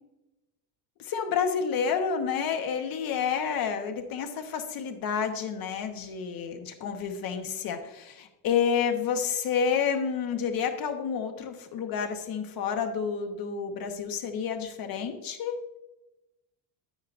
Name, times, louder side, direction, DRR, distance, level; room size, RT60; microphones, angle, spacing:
voice 1, 1.0-15.6, left 7 dB, 45° left, 6 dB, 1.1 m, -29 dB
9.5 x 9.1 x 2.5 m, 0.96 s
cardioid pair, 140°, 50 cm